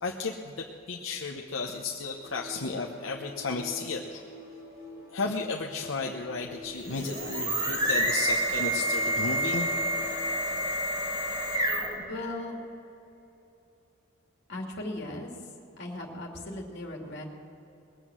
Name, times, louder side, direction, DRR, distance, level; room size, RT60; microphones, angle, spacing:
voice 1, 0.0-4.2 5.1-9.7, left 4 dB, 80° left, 0 dB, 1.0 m, -33 dB
sound 1, 2.1-10.5, left 1 dB, 75° right, 4.2 m, -47 dB
sound 2, 6.7-12.0, right 1 dB, 25° right, 2.6 m, -28 dB
voice 2, 12.1-12.5 14.5-15.3 15.8-17.2, left 1 dB, 60° left, 0 dB, 2.6 m, -37 dB
20.5 x 8.2 x 7.5 m, 2.9 s
head